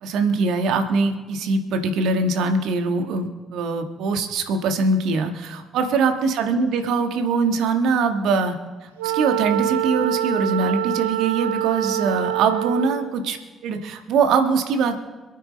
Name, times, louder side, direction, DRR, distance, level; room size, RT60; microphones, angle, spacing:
voice 1, 0.0-8.6 8.8-13.4 13.6-15.0, right 4 dB, 65° right, 6 dB, 1.5 m, -22 dB
Wind instrument woodwind instrument, 9.0-13.2, right 13 dB, 80° right, 0.3 m, -25 dB
27.0 x 9.1 x 3.3 m, 1.3 s
figure-of-eight pair, 45°, 0 cm